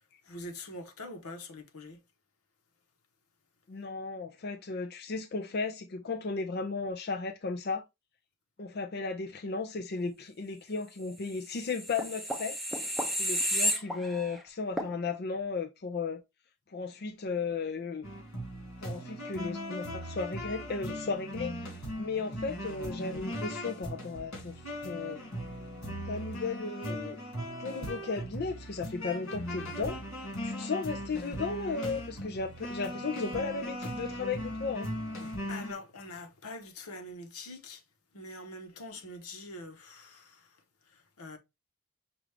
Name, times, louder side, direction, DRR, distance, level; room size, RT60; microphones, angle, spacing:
voice 1, 0.2-2.0 35.2-37.8 38.1-41.4, left 2 dB, 85° left, 1.1 m, -44 dB
voice 2, 3.7-7.8 8.6-12.6 13.2-16.2 16.7-18.1 18.8-21.7 22.0-25.2 26.1-27.2 27.6-30.0 30.4-34.9, left 4 dB, 45° left, 0.5 m, -35 dB
sound 1, 11.5-14.4 14.8-14.9, equal, ahead, 0.6 m, -32 dB
sound 2, 18.0-35.7, equal, 65° left, 2.7 m, -38 dB
6.0 x 2.5 x 3.3 m
head